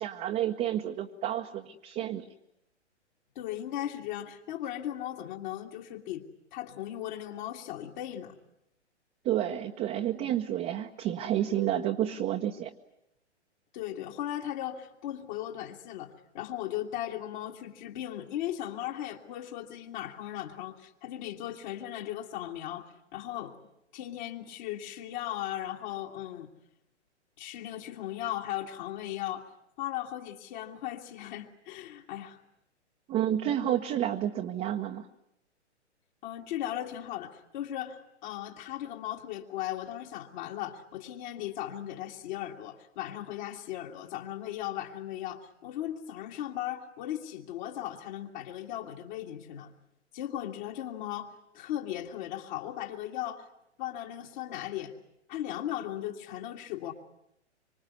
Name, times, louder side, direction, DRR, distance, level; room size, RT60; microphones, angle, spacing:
voice 1, 0.0-2.2 9.2-12.7 33.1-35.1, right 11 dB, 20° right, 2 dB, 1.1 m, -30 dB
voice 2, 3.4-6.2 6.5-8.4 13.7-23.6 23.9-26.5 27.4-29.5 29.8-32.4 36.2-49.7 50.1-53.4 53.8-54.9 55.3-56.9, left 12 dB, 40° left, 0 dB, 2.1 m, -37 dB
25.0 x 25.0 x 9.6 m, 0.81 s
figure-of-eight pair, 120°, 35 cm